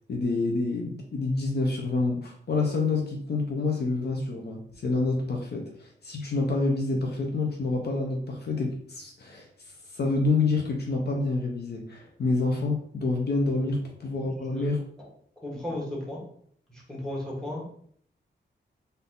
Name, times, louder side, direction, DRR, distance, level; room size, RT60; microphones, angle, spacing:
voice 1, 0.1-9.5 9.9-14.8, left 3 dB, 60° left, 1 dB, 0.7 m, -28 dB
voice 2, 14.2-14.7 15.4-16.2 16.9-17.7, left 1 dB, 5° left, -3 dB, 1.5 m, -34 dB
4.0 x 2.7 x 3.7 m, 0.63 s
wide cardioid pair, 105°, 19 cm